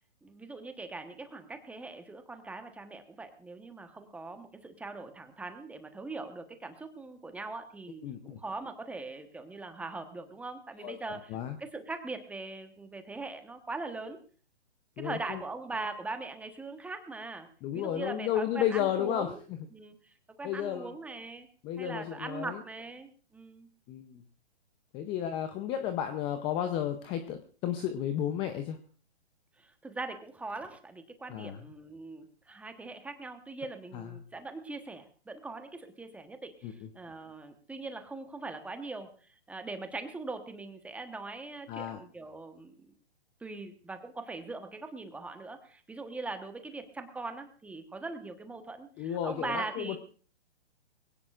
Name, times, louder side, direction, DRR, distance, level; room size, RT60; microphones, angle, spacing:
voice 1, 0.2-14.2 15.0-17.5 17.7-19.4 19.7-20.1 20.4-21.5 21.8-23.7 29.6-42.9 43.4-50.0, right 3 dB, 5° right, 7 dB, 1.1 m, -41 dB
voice 2, 8.0-8.4 10.8-11.0 11.3-11.6 15.0-15.4 17.6-19.3 20.4-20.9 21.6-22.6 23.9-24.2 24.9-28.8 31.3-31.6 33.9-34.1 36.6-36.7 41.7-42.0 49.0-50.0, left 10 dB, 15° left, 9 dB, 0.6 m, -33 dB
22.0 x 17.0 x 2.5 m, 0.40 s
hypercardioid pair, 145°, 33 cm